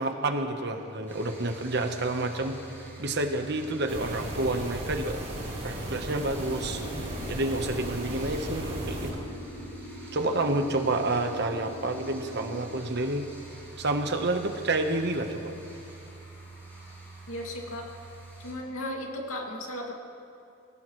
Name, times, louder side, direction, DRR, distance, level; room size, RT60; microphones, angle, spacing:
voice 1, 0.0-5.2 5.6-6.8 7.3-9.3 10.1-13.3 13.8-15.6, right 2 dB, 50° right, 5 dB, 1.2 m, -29 dB
sound 1, 1.1-18.5, right 2 dB, 10° left, 5.0 m, -46 dB
sound 2, 3.9-9.1, right 1 dB, 30° right, 4.5 m, -36 dB
sound 3, 6.1-12.7, equal, 60° left, 3.5 m, -43 dB
voice 2, 17.3-17.9 18.4-19.9, left 1 dB, 80° left, 0 dB, 2.5 m, -35 dB
26.0 x 16.5 x 3.2 m, 2.6 s
head